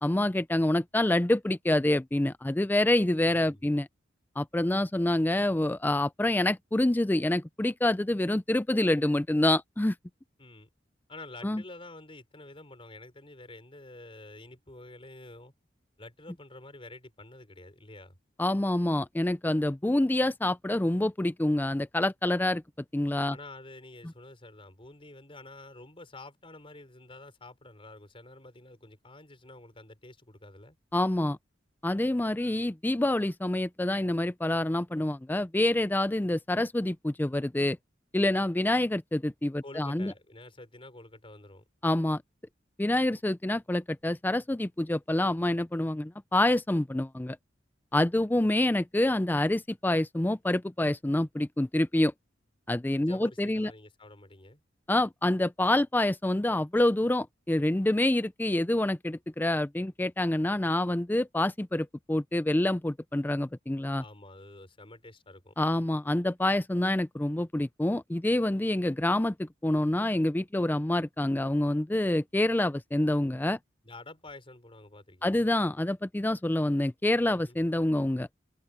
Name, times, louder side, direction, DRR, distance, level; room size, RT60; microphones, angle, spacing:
voice 1, 0.0-3.9 4.4-9.9 11.4-11.6 18.4-22.6 22.9-23.4 30.9-31.4 31.8-37.8 38.1-40.1 41.8-42.2 42.8-47.4 47.9-52.1 52.7-53.7 54.9-64.0 65.6-73.6 75.2-78.3, left 1 dB, 10° left, 0.4 m, -27 dB
voice 2, 3.3-3.6 10.4-10.7 11.1-15.5 16.0-18.2 23.3-30.8 39.6-41.7 53.0-54.6 64.0-65.5 73.8-75.4 77.3-77.6, left 2 dB, 30° left, 4.8 m, -48 dB
head